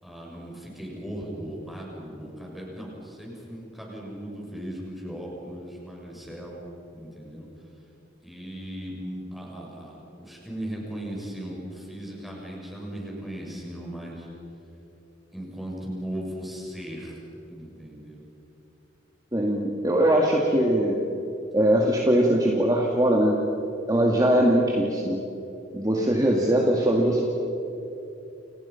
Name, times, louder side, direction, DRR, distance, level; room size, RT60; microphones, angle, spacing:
voice 1, 0.0-7.5 8.2-14.3 15.3-17.2 17.5-18.3, right 1 dB, ahead, -3 dB, 7.0 m, -37 dB
voice 2, 19.3-21.0 21.5-23.4 23.9-25.2 25.7-27.3, right 1 dB, 20° right, -1 dB, 2.2 m, -21 dB
29.5 x 29.5 x 5.9 m, 3.0 s
head